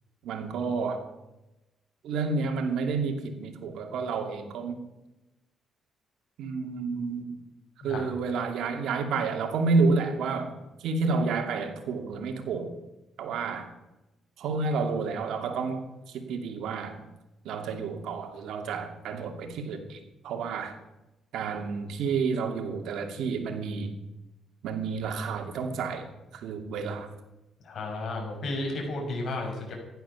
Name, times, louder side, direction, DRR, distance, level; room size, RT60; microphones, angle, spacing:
voice 1, 0.2-1.0 2.0-4.8 6.4-7.4 7.8-10.5 10.8-12.7 13.2-13.7 14.4-17.0 17.4-20.0 20.2-20.8 21.3-23.9 24.6-26.1 26.3-27.1, right 4 dB, 80° right, 5 dB, 2.5 m, -30 dB
voice 2, 27.6-29.7, left 2 dB, 55° left, 1 dB, 6.6 m, -33 dB
15.5 x 12.0 x 7.0 m, 1.0 s
cardioid pair, 90°, 0 cm